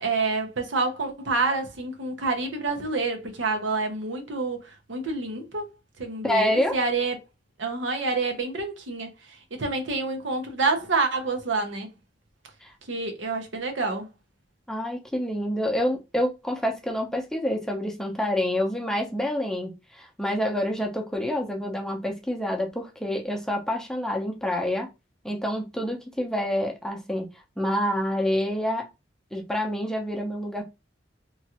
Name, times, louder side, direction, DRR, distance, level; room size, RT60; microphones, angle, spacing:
voice 1, 0.0-4.6 4.9-5.7 6.0-7.2 7.6-9.1 9.5-11.9 12.9-14.1, right 3 dB, 85° right, 0.8 m, -27 dB
voice 2, 6.2-6.8 12.6-12.7 14.7-24.9 25.2-27.3 27.6-28.9 29.3-30.6, left 1 dB, 5° left, 0.5 m, -27 dB
3.0 x 2.4 x 2.8 m
head